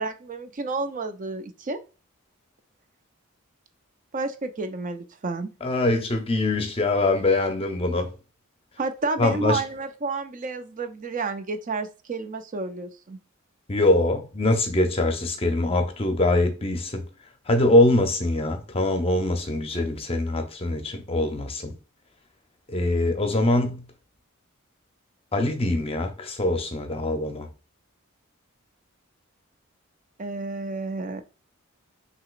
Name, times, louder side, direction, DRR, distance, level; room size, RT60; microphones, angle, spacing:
voice 1, 0.0-1.8 4.1-5.5 8.8-13.2 30.2-31.2, right 3 dB, 35° right, 0.4 m, -30 dB
voice 2, 5.6-8.1 9.2-9.6 13.7-17.0 17.5-21.7 22.7-23.8 25.3-27.5, left 2 dB, 25° left, 0.6 m, -23 dB
6.1 x 2.9 x 2.5 m
head